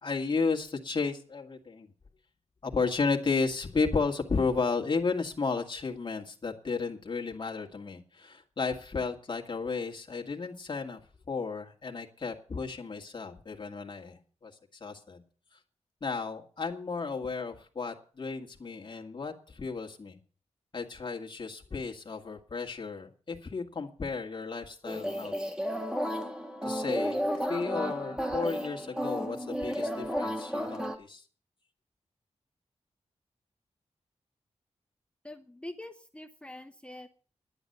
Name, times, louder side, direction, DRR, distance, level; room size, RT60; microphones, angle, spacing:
voice 1, 0.0-1.9 2.6-11.0 11.3-14.5 14.8-15.2 16.0-20.2 20.7-25.3 26.6-27.2 27.5-31.2, left 4 dB, 40° left, 0 dB, 2.1 m, -33 dB
sound 1, 24.8-31.0, equal, 5° right, 1.5 m, -32 dB
voice 2, 35.2-37.1, left 1 dB, 10° left, 8 dB, 0.7 m, -44 dB
11.0 x 10.0 x 6.7 m, 0.41 s
wide cardioid pair, 140°, 12 cm